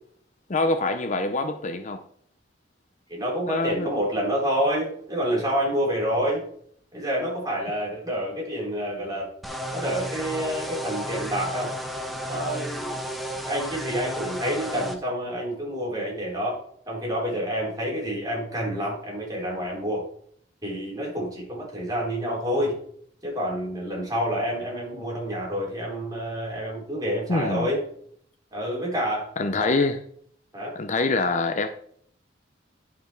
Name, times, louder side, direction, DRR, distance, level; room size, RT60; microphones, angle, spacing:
voice 1, 0.5-2.0 3.4-3.9 27.3-27.7 29.4-30.0 30.7-31.7, left 3 dB, 40° left, 0.6 m, -25 dB
voice 2, 3.1-6.4 6.9-9.3 9.7-11.7 12.3-12.9 13.4-20.0 20.6-22.8 23.2-27.8 28.5-29.3 29.6-29.7 30.5-30.8, equal, 20° right, 4.2 m, -28 dB
sound 1, 9.4-15.0, equal, ahead, 1.1 m, -33 dB
11.0 x 5.7 x 4.5 m
head